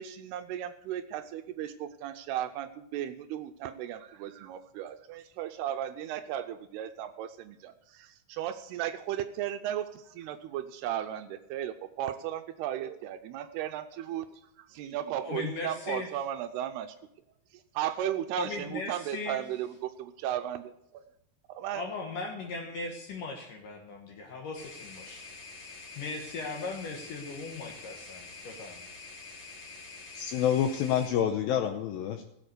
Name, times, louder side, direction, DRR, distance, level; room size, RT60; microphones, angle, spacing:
voice 1, 0.0-17.0 17.5-21.0 21.5-21.8, right 11 dB, 80° right, 9 dB, 2.6 m, -35 dB
voice 2, 15.2-16.1 18.4-19.4 21.7-25.3 26.0-28.8, left 3 dB, 60° left, 1 dB, 2.6 m, -38 dB
sound 1, 24.5-31.1, left 4 dB, 45° left, 4.4 m, -46 dB
voice 3, 30.1-32.2, left 9 dB, 80° left, 6 dB, 2.2 m, -27 dB
16.5 x 8.0 x 6.6 m, 0.81 s
omnidirectional pair, 4.8 m